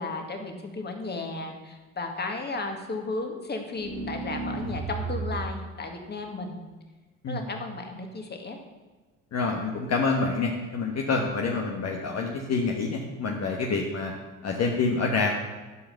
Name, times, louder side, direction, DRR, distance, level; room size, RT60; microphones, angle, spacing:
voice 1, 0.0-6.6 7.3-8.6, left 3 dB, 30° left, 3 dB, 1.9 m, -34 dB
sound 1, 3.7-5.5, right 3 dB, 90° right, 2.2 m, -33 dB
voice 2, 9.3-14.1 14.4-15.4, left 4 dB, 45° left, 0 dB, 1.3 m, -27 dB
11.5 x 5.0 x 6.6 m, 1.3 s
supercardioid pair, 75°, 35 cm